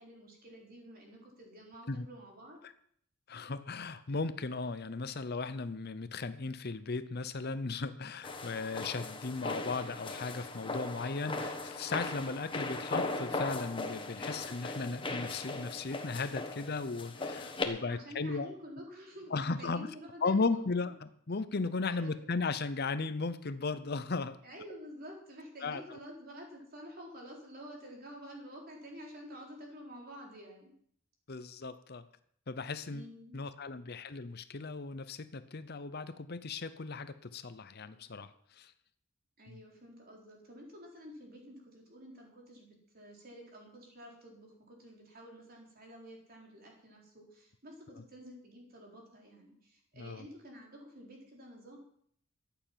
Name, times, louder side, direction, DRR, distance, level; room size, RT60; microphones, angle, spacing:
voice 1, 0.0-2.6 14.2-14.5 17.7-20.6 21.9-22.2 24.4-30.7 32.9-33.4 39.4-51.8, equal, 45° right, 0 dB, 4.0 m, -50 dB
voice 2, 3.3-18.5 19.3-19.9 20.2-24.4 25.6-26.0 31.3-32.0 32.5-33.1 33.3-38.7 39.5-39.6 48.0-48.1 50.0-50.3, left 4 dB, 45° left, 13 dB, 0.7 m, -36 dB
sound 1, 8.2-17.7, left 2 dB, 25° left, 1.2 m, -38 dB
14.0 x 9.1 x 7.4 m, 0.65 s
head